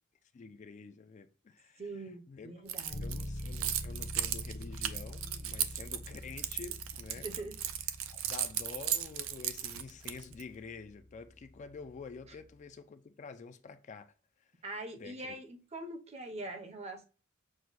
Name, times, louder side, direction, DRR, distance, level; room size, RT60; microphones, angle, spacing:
voice 1, 0.3-1.8 2.3-2.5 3.0-7.3 8.1-14.1 14.4-14.5 15.0-15.4, left 5 dB, 35° left, 0.3 m, -48 dB
voice 2, 1.8-3.3 7.2-7.6 14.6-17.0, right 2 dB, 30° right, 0.7 m, -43 dB
Keys jangling, 2.7-10.4, right 11 dB, 80° right, 0.5 m, -36 dB
Bass guitar, 2.9-12.6, left 1 dB, 60° left, 0.8 m, -46 dB
6.2 x 2.2 x 3.8 m
head